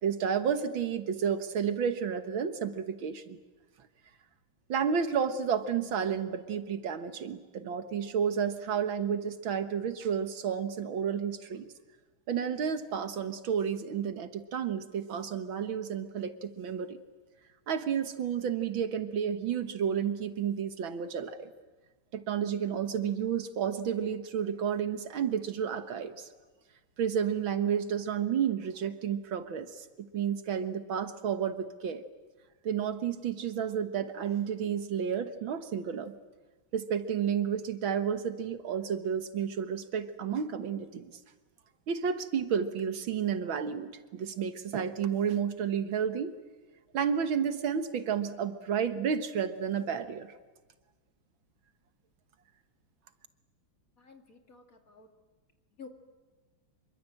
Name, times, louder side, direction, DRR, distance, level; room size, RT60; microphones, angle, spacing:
voice 1, 0.0-3.4 4.7-11.7 12.3-17.0 17.7-21.5 22.1-26.3 27.0-32.0 32.6-36.1 36.7-41.1 41.9-46.4 46.9-50.3, right 7 dB, 70° right, 9 dB, 2.1 m, -31 dB
voice 2, 54.0-55.1 55.8-55.9, left 5 dB, 40° left, 4 dB, 2.9 m, -51 dB
26.5 x 24.0 x 7.7 m, 1.3 s
omnidirectional pair, 2.3 m